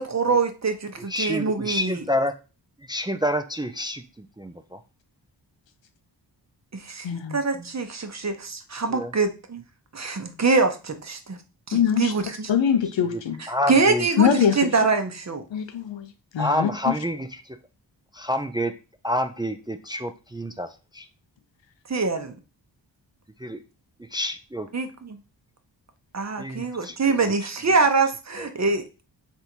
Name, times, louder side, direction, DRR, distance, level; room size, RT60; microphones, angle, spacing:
voice 1, 0.0-2.0 6.7-9.6 9.9-11.4 11.7-12.5 13.4-15.4 21.9-22.4 24.7-25.2 26.1-28.8, right 4 dB, 40° right, 7 dB, 0.8 m, -24 dB
voice 2, 1.1-2.3 2.9-4.8 8.9-9.1 13.0-13.2 13.5-14.1 16.4-17.6 18.1-18.7 19.0-21.1 23.4-23.6 24.1-24.7 26.4-27.3 28.4-28.5, left 1 dB, 10° right, 7 dB, 0.4 m, -28 dB
voice 3, 7.0-7.3 11.7-12.1 12.5-13.4 14.2-14.5 15.5-16.0 16.3-16.9, left 8 dB, 80° left, 9 dB, 0.7 m, -22 dB
3.5 x 2.6 x 4.4 m, 0.32 s
cardioid pair, 45°, 44 cm